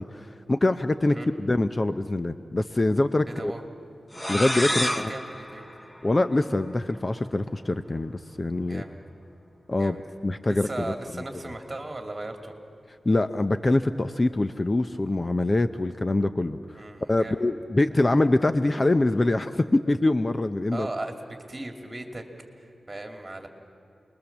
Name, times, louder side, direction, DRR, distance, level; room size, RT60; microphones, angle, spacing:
voice 1, 0.0-3.5 4.3-5.1 6.0-8.8 9.7-10.0 10.2-10.9 13.0-16.8 17.1-20.9, left 2 dB, 30° left, 10 dB, 0.7 m, -24 dB
voice 2, 3.3-3.6 4.7-5.7 8.7-9.0 9.8-10.0 10.5-12.5 16.8-17.5 20.7-22.2 22.6-23.5, right 2 dB, 25° right, 4 dB, 2.6 m, -37 dB
sound 1, 4.1-6.7, equal, 10° left, 1.1 m, -30 dB
28.5 x 21.0 x 7.3 m, 2.7 s
wide cardioid pair, 90°, 0 cm